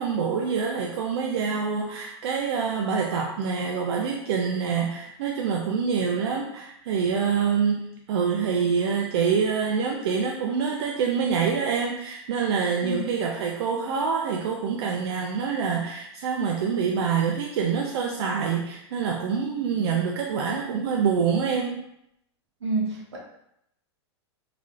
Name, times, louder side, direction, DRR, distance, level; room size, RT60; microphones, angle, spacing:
voice 1, 0.0-21.8, right 6 dB, 65° right, 0 dB, 0.4 m, -26 dB
voice 2, 22.6-23.2, right 2 dB, 90° right, -2 dB, 1.0 m, -28 dB
3.2 x 2.4 x 2.4 m, 0.79 s
hypercardioid pair, 135°, 14 cm